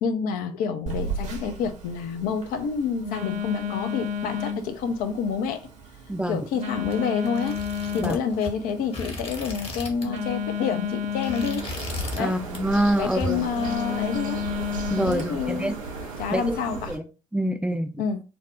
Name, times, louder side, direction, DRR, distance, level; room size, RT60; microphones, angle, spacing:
voice 1, 0.0-5.7 6.3-7.6 7.9-11.6 12.2-12.4 13.0-14.4 15.0-15.8 16.2-16.9 18.0-18.2, left 6 dB, 60° left, 0.4 m, -28 dB
Telephone, 0.9-15.2, left 5 dB, 45° right, 0.8 m, -33 dB
voice 2, 6.1-6.4 8.0-8.2 12.1-13.4 14.9-15.8 16.3-16.6 16.9-17.0 17.3-18.0, right 1 dB, 5° right, 0.4 m, -26 dB
sound 1, 6.8-10.2 10.5-10.7 11.1-12.3 12.5-12.9 13.2-14.2, left 1 dB, 35° left, 1.0 m, -35 dB
sound 2, 11.6-17.0, right 4 dB, 85° right, 0.5 m, -36 dB
2.5 x 2.0 x 3.3 m
figure-of-eight pair, 45°, 17 cm